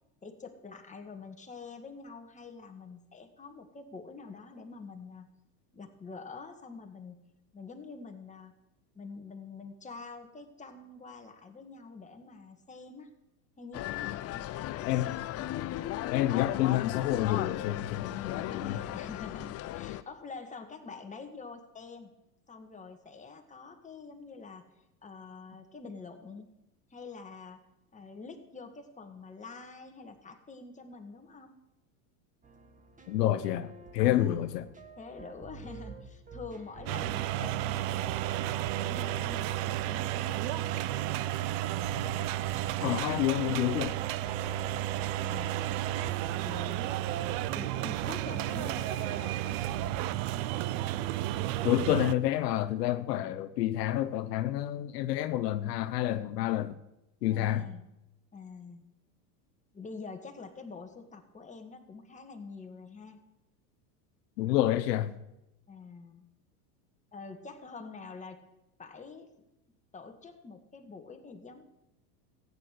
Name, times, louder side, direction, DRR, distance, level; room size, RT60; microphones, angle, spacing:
voice 1, 0.2-5.3 5.7-7.2 7.5-8.5 8.9-13.1 13.6-14.5 18.5-22.1 22.5-24.6 25.0-26.5 26.9-27.6 27.9-31.5 34.0-34.5 35.0-40.8 45.2-45.6 46.4-47.2 47.5-49.8 57.3-57.8 58.3-58.9 59.7-63.2 65.7-66.3 67.1-68.4 68.8-69.3 69.9-71.7, left 4 dB, 15° left, 1.9 m, -46 dB
sound 1, 13.7-20.0, left 14 dB, 30° left, 0.6 m, -36 dB
voice 2, 16.1-18.8 33.1-34.7 42.8-44.0 51.6-56.8 57.2-57.7 64.4-65.1, left 13 dB, 80° left, 0.9 m, -29 dB
sound 2, 32.4-50.1, right 2 dB, 15° right, 1.8 m, -50 dB
sound 3, 36.9-52.1, right 13 dB, 55° right, 0.8 m, -32 dB
14.5 x 9.9 x 6.6 m
supercardioid pair, 110°, 48 cm